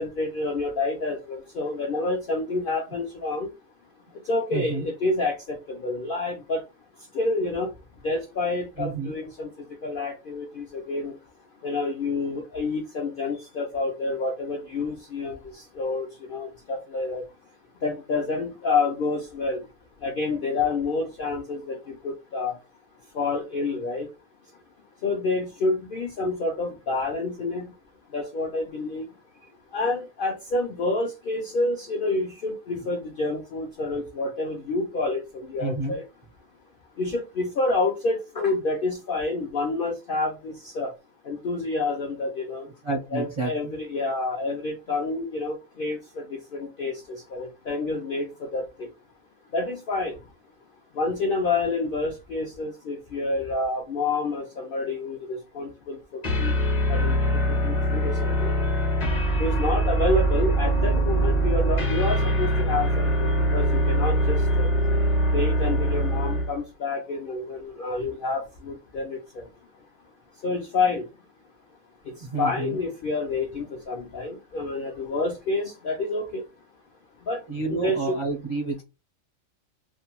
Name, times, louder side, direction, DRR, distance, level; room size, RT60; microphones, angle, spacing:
voice 1, 0.0-3.5 4.3-6.6 7.1-7.7 8.0-9.5 9.8-11.1 11.6-17.2 17.8-19.6 20.0-22.6 23.1-24.1 25.0-27.7 28.1-29.1 29.7-36.0 37.0-40.9 41.3-42.7 43.1-47.0 47.3-48.9 49.5-50.2 51.0-56.0 56.4-56.5 56.9-57.2 57.5-58.5 59.4-64.7 65.3-69.4 70.4-71.1 72.1-76.4 77.3-77.4 77.7-78.2, left 3 dB, 70° left, 3 dB, 0.5 m, -28 dB
voice 2, 4.5-4.9 8.8-9.1 35.6-36.0 42.8-43.7 72.2-72.8 77.5-78.8, right 3 dB, 50° right, -3 dB, 0.3 m, -29 dB
sound 1, 56.2-66.6, right 1 dB, 35° left, 0.8 m, -23 dB
2.5 x 2.1 x 2.9 m, 0.27 s
omnidirectional pair, 1.4 m